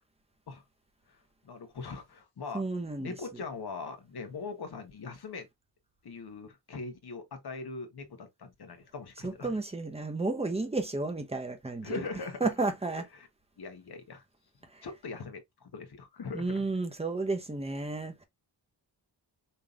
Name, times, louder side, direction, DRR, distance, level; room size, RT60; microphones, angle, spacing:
voice 1, 1.4-2.6 3.0-5.5 6.0-9.6 11.8-12.5 13.1-13.3 13.6-14.2 14.8-16.6, left 4 dB, 60° left, 1.4 m, -41 dB
voice 2, 2.5-3.1 9.2-12.0 12.4-13.0 16.3-18.2, right 3 dB, 15° right, 1.0 m, -32 dB
5.5 x 3.4 x 2.5 m
wide cardioid pair, 95°, 44 cm